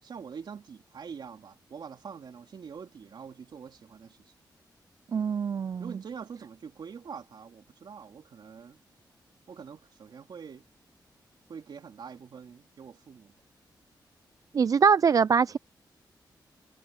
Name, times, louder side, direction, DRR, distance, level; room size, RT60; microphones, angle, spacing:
voice 1, 0.0-4.2 5.8-8.8 9.5-10.7 11.5-13.3, right 6 dB, 65° right, 3.3 m, -44 dB
voice 2, 5.1-5.8 14.5-15.6, right 6 dB, 45° right, 0.3 m, -23 dB
cardioid pair, 85°, 8 cm